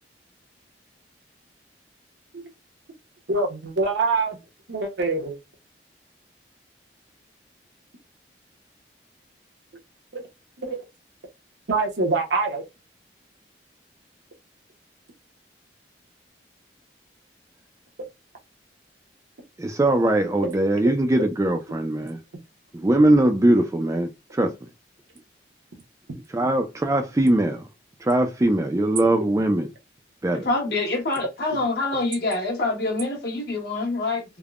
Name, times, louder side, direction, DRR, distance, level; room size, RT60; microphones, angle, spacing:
voice 1, 3.3-4.4 4.7-5.4 10.1-10.2 10.6-10.8 11.7-12.6 31.5-31.6, right 3 dB, 80° right, 0.8 m, -24 dB
voice 2, 19.6-22.2 22.7-24.5 26.3-27.6 28.0-29.7 30.2-30.5, right 1 dB, 15° right, 0.3 m, -21 dB
voice 3, 30.4-34.2, left 2 dB, 60° left, 1.2 m, -25 dB
3.4 x 2.1 x 2.4 m
head